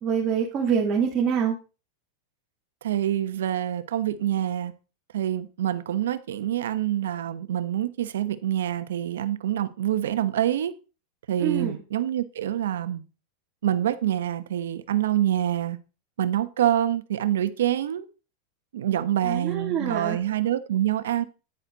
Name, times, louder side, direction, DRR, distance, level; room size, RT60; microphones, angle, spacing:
voice 1, 0.0-1.6 11.4-11.8 19.2-20.2, right 7 dB, 30° right, 2.8 m, -25 dB
voice 2, 2.8-4.7 5.1-10.7 11.3-13.0 13.6-15.8 16.2-18.1 18.7-21.2, right 11 dB, 90° right, 1.0 m, -26 dB
10.0 x 9.9 x 4.0 m
supercardioid pair, 130°, 0 cm